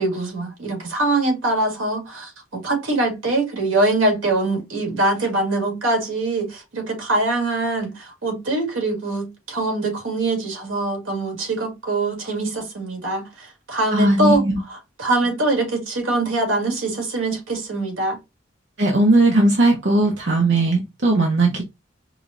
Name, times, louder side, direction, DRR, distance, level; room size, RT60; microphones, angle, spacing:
voice 1, 0.0-14.4 14.7-18.2, right 2 dB, 85° right, 1.9 m, -23 dB
voice 2, 13.9-14.6 18.8-21.6, right 2 dB, 60° right, 0.8 m, -18 dB
4.9 x 2.3 x 2.5 m
head